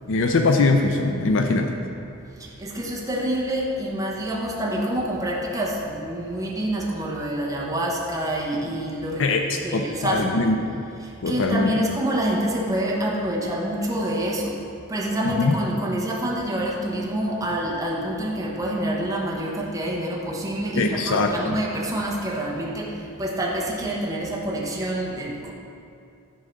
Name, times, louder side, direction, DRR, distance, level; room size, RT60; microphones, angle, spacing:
voice 1, 0.1-1.7 9.2-10.8 11.2-11.7 15.2-15.6 20.7-21.6, left 3 dB, 60° left, 4 dB, 0.5 m, -22 dB
voice 2, 2.1-9.3 9.6-10.4 11.0-14.6 14.9-25.5, right 1 dB, 15° right, -4 dB, 1.0 m, -27 dB
11.0 x 3.7 x 6.5 m, 2.5 s
head